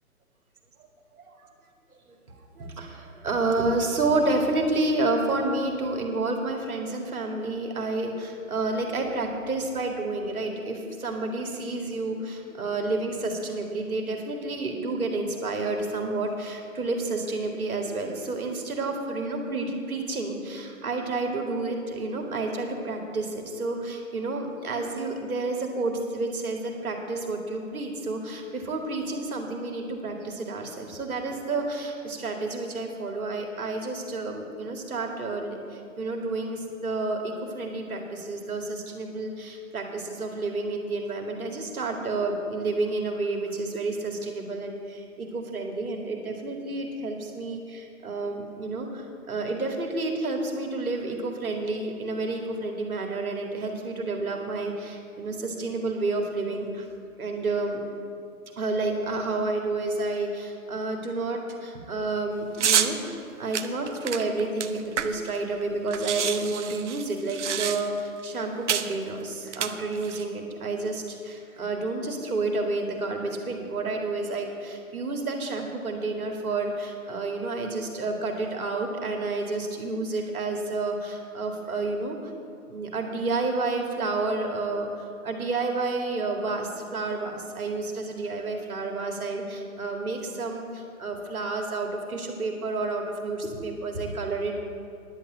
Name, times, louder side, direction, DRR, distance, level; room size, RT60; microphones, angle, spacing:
voice 1, 2.6-56.9 57.2-57.8 58.6-82.3 82.7-94.6, right 3 dB, 80° right, 2 dB, 2.1 m, -30 dB
sound 1, 62.6-62.9 63.5-65.4 65.6-65.7 65.9-68.1 68.7-68.9 69.5-70.2, right 8 dB, 55° right, 0.7 m, -28 dB
10.5 x 5.9 x 8.7 m, 2.5 s
hypercardioid pair, 150°, 43 cm